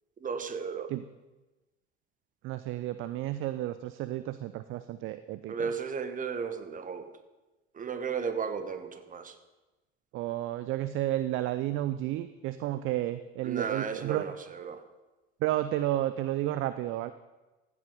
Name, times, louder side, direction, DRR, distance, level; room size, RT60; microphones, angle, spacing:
voice 1, 0.2-0.9 5.5-7.1 7.8-9.3 13.4-14.8, right 6 dB, 25° right, 9 dB, 1.2 m, -34 dB
voice 2, 2.4-5.7 10.1-14.4 15.4-17.1, right 14 dB, 40° right, 13 dB, 0.5 m, -32 dB
15.0 x 6.1 x 5.3 m, 1.1 s
hypercardioid pair, 70°, 31 cm